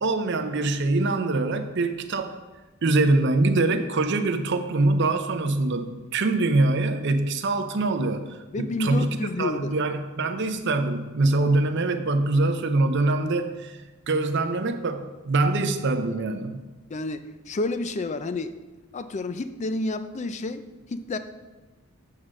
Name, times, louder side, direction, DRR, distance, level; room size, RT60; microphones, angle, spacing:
voice 1, 0.0-2.4 2.8-13.8 14.1-16.6, right 2 dB, 55° right, 7 dB, 0.6 m, -24 dB
voice 2, 8.5-9.7 16.9-18.6 18.9-20.6 20.9-21.2, left 2 dB, 35° left, 10 dB, 0.4 m, -29 dB
8.0 x 3.7 x 6.4 m, 1.2 s
head